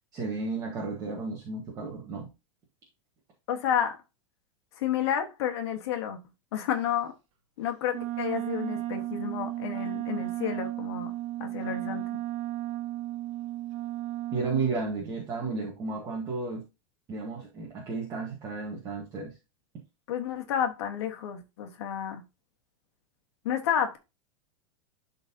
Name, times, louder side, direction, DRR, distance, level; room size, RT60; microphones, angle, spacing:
voice 1, 0.1-2.3 14.3-16.6 17.1-19.4, right 4 dB, 20° right, 1.4 m, -33 dB
voice 2, 3.5-4.0 4.8-6.2 6.5-7.1 7.6-11.1 11.4-12.2 20.1-22.2 23.4-24.0, left 9 dB, 55° left, 1.5 m, -30 dB
Wind instrument woodwind instrument, 7.9-14.7, right 15 dB, 55° right, 1.4 m, -34 dB
11.5 x 4.0 x 2.8 m
supercardioid pair, 180°, 17 cm